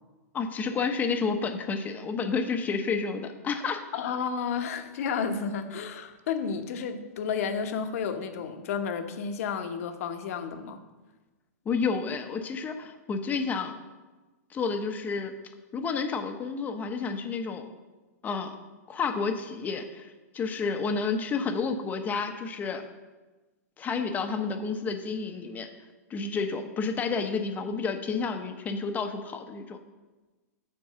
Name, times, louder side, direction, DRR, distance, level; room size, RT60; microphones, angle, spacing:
voice 1, 0.3-3.8 11.7-13.8 14.5-15.3 15.7-17.7 18.2-18.5 18.9-22.8 23.8-25.7 26.1-29.8, left 5 dB, 20° left, 6 dB, 0.8 m, -30 dB
voice 2, 3.9-10.8, left 6 dB, 60° left, 7 dB, 1.0 m, -31 dB
7.7 x 4.6 x 6.7 m, 1.2 s
hypercardioid pair, 135°, 9 cm